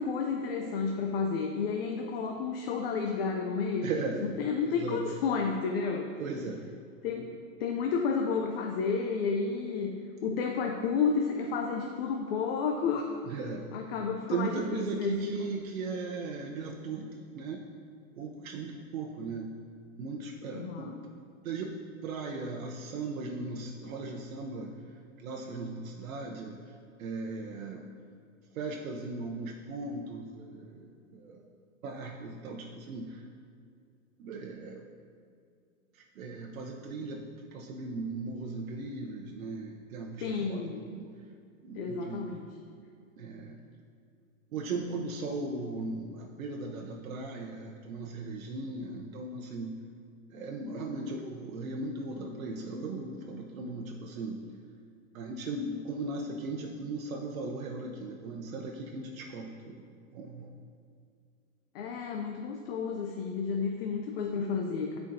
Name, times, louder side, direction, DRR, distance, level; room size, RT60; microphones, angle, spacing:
voice 1, 0.0-3.9 4.2-6.1 7.0-7.3 7.6-13.1 13.7-15.6 20.5-20.9 40.2-40.8 41.7-42.4 61.7-65.0, left 5 dB, 45° left, 3 dB, 0.5 m, -31 dB
voice 2, 3.8-4.2 4.6-5.0 6.2-6.6 13.2-13.7 14.3-17.6 18.1-19.5 20.0-21.0 21.4-21.8 22.0-24.7 25.2-27.9 28.5-31.5 31.8-33.2 34.2-34.8 35.9-41.0 41.6-42.3 43.2-43.6 44.5-49.7 50.3-54.4 55.1-59.8 60.1-60.5, right 3 dB, 90° right, 0 dB, 0.8 m, -38 dB
10.5 x 4.5 x 2.6 m, 2.3 s
hypercardioid pair, 155°, 40 cm